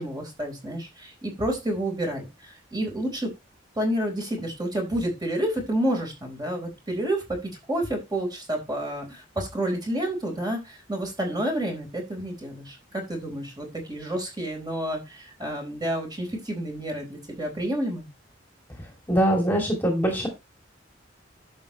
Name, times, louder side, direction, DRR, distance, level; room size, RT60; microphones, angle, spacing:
voice 1, 0.0-3.3 3.8-18.1, right 1 dB, 20° right, 2 dB, 4.2 m, -29 dB
voice 2, 19.1-20.3, right 1 dB, 10° left, 1 dB, 2.5 m, -22 dB
11.0 x 7.0 x 3.1 m, 0.25 s
head